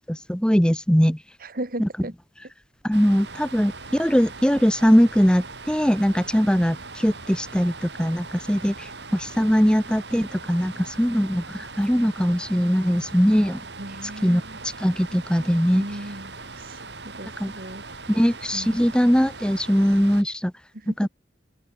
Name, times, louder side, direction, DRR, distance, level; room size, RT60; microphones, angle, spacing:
voice 1, 0.1-1.2 1.8-1.9 2.8-13.6 14.2-14.4 14.8-15.8 17.4-17.5 18.1-20.5 21.0-21.1, equal, 5° left, 1.2 m, -21 dB
voice 2, 1.4-2.1 13.8-14.6 15.1-15.5 15.7-17.9 18.5-18.8 20.7-21.1, right 1 dB, 50° right, 2.8 m, -37 dB
sound 1, 2.9-20.2, right 3 dB, 65° right, 5.1 m, -40 dB
open air
head